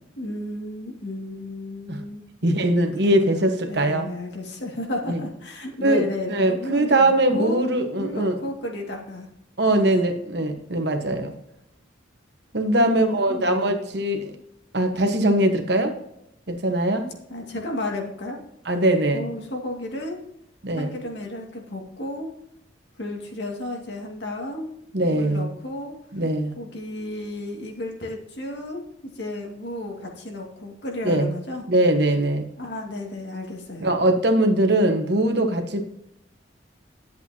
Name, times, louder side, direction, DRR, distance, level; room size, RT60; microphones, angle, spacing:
voice 1, 0.2-7.6 8.0-9.3 9.7-10.1 12.9-13.8 17.3-18.4 19.1-20.2 20.8-22.3 23.0-24.7 25.0-26.0 26.6-28.8 29.1-31.6 32.6-33.9, left 1 dB, 65° left, 1 dB, 2.2 m, -33 dB
voice 2, 2.4-4.1 5.1-5.2 5.8-8.4 9.6-11.3 12.5-14.4 14.7-15.9 16.5-17.1 18.7-19.2 20.6-20.9 24.9-25.6 26.1-26.5 31.0-31.3 31.7-32.5 33.8-35.8, right 1 dB, 60° right, 5 dB, 1.3 m, -21 dB
11.0 x 8.1 x 2.9 m, 0.77 s
head